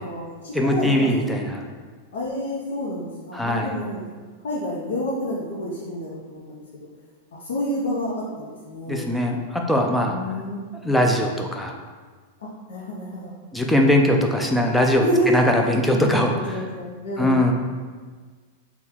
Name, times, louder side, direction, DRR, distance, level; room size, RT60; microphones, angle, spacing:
voice 1, 0.0-1.6 2.1-4.1 4.4-6.6 7.3-9.0 10.1-10.6 12.4-13.3 15.0-15.4 16.5-17.4, equal, 90° left, -5 dB, 0.7 m, -29 dB
voice 2, 0.5-1.6 3.3-3.7 8.9-10.2 10.8-11.7 13.5-16.6 17.2-17.5, left 1 dB, ahead, 1 dB, 0.4 m, -21 dB
3.6 x 2.3 x 4.3 m, 1.5 s
supercardioid pair, 150°, 0 cm